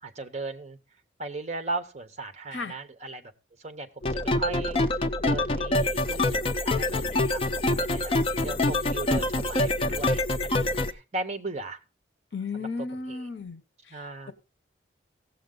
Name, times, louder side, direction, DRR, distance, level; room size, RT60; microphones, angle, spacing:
voice 1, 0.0-0.8 1.2-3.3 3.6-4.8 5.2-8.1 8.4-11.8 12.5-13.3 13.9-14.3, right 2 dB, 35° right, 0.9 m, -37 dB
sound 1, 4.0-10.9, left 2 dB, 30° left, 0.5 m, -26 dB
voice 2, 12.3-14.3, left 4 dB, 70° left, 0.9 m, -35 dB
16.0 x 7.5 x 3.8 m
head